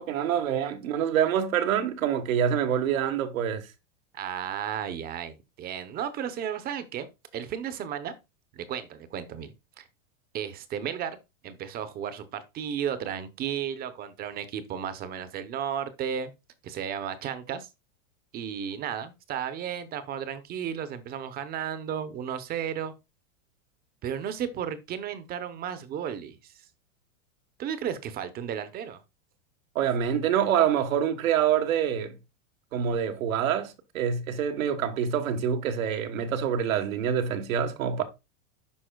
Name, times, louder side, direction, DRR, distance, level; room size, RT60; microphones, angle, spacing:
voice 1, 0.0-3.6 29.7-32.1 32.7-38.0, right 8 dB, 85° right, 1.3 m, -26 dB
voice 2, 4.1-7.1 7.3-8.1 8.5-9.5 9.8-9.9 10.3-11.2 11.4-16.3 16.6-17.7 18.3-22.9 24.0-26.7 27.6-29.0, right 8 dB, 25° right, 0.7 m, -34 dB
11.5 x 4.1 x 2.2 m
supercardioid pair, 150°, 39 cm